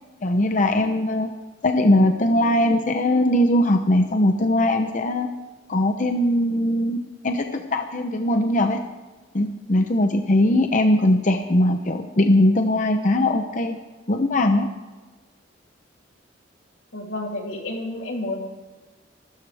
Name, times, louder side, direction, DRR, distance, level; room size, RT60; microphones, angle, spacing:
voice 1, 0.2-1.3 1.6-5.3 5.7-7.0 7.2-8.8 9.3-13.8 14.1-14.7, left 1 dB, 45° left, 6 dB, 0.8 m, -20 dB
voice 2, 16.9-18.4, left 2 dB, 90° left, -1 dB, 3.5 m, -30 dB
24.5 x 13.0 x 3.5 m, 1.3 s
head